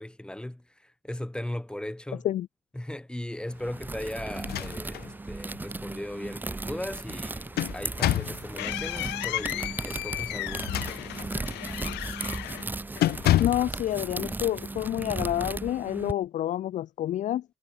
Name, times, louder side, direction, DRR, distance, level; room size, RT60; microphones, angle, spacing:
voice 1, 0.0-2.3 2.7-11.1, left 1 dB, 5° left, 7.2 m, -38 dB
sound 1, 3.5-16.1, right 2 dB, 10° right, 0.6 m, -36 dB
sound 2, 4.3-5.1 5.5-5.6 7.1-8.4 10.5-11.4 11.9-12.1 12.4-12.6 13.0-13.7, left 14 dB, 70° left, 1.9 m, -28 dB
sound 3, 7.6-13.4, left 20 dB, 90° left, 3.4 m, -36 dB
voice 2, 13.4-17.4, left 12 dB, 50° left, 0.4 m, -28 dB
cardioid pair, 110°, 17 cm